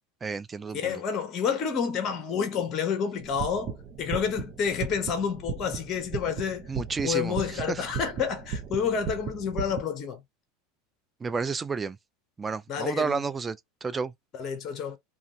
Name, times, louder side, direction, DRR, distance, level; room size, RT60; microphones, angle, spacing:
voice 1, 0.2-1.0 6.7-7.8 11.2-12.0 12.4-14.1, right 5 dB, 20° right, 0.3 m, -31 dB
voice 2, 0.7-6.7 7.0-10.2 12.7-13.2 14.3-15.0, left 7 dB, 40° left, 0.8 m, -29 dB
sound 1, 3.2-9.8, right 6 dB, 45° right, 0.8 m, -36 dB
2.5 x 2.3 x 3.1 m
hypercardioid pair, 90°, 0 cm